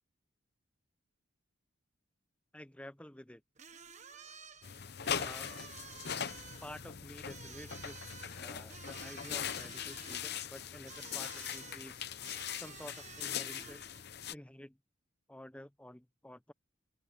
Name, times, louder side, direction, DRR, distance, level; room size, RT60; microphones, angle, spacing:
voice 1, 2.5-3.4 3.7-3.9 5.1-5.6 6.6-8.1 8.4-12.0 12.5-13.8 14.3-14.8 15.3-16.5, left 1 dB, 5° left, 0.6 m, -50 dB
sound 1, 3.6-14.0, right 7 dB, 35° right, 1.2 m, -53 dB
sound 2, 4.6-14.3, left 8 dB, 50° left, 0.8 m, -41 dB
open air
head